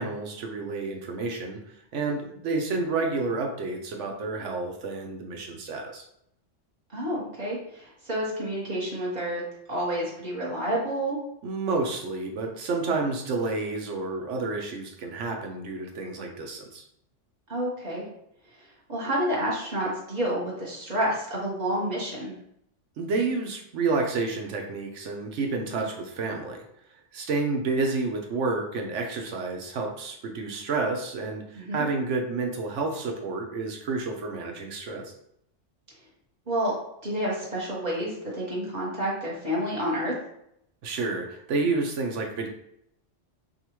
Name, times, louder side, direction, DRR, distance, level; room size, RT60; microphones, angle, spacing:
voice 1, 0.0-1.6 1.9-6.0 11.4-16.8 23.0-26.6 27.1-35.1 40.8-42.5, right 3 dB, 80° right, 2 dB, 1.1 m, -30 dB
voice 2, 6.9-9.4 9.7-11.2 17.5-18.0 18.6-22.3 25.7-25.9 31.6-31.8 36.5-36.7 37.0-40.1, right 1 dB, 35° right, -6 dB, 1.4 m, -29 dB
5.1 x 2.4 x 3.0 m, 0.76 s
omnidirectional pair, 1.2 m